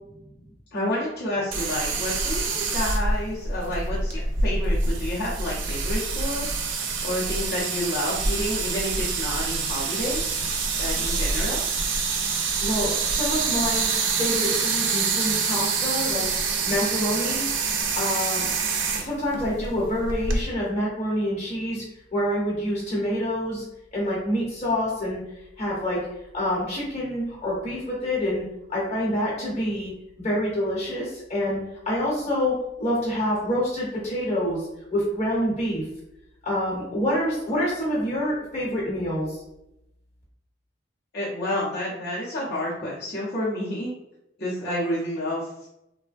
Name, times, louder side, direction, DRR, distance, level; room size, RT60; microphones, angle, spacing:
voice 1, 0.7-6.5 7.0-10.4 10.8-11.6 41.1-43.9 44.4-45.7, left 1 dB, 60° left, -8 dB, 0.7 m, -29 dB
sound 1, 1.5-20.4, right 4 dB, 85° right, 0.5 m, -26 dB
voice 2, 12.6-13.9 14.2-16.3 16.6-17.4 17.9-18.5 18.9-21.8 22.1-23.6 23.9-25.2 25.6-26.0 26.3-28.4 28.7-29.9 30.2-31.6 31.9-34.6 34.9-35.8 36.4-39.4, equal, 35° left, -5 dB, 1.0 m, -26 dB
3.2 x 2.0 x 2.5 m, 0.86 s
head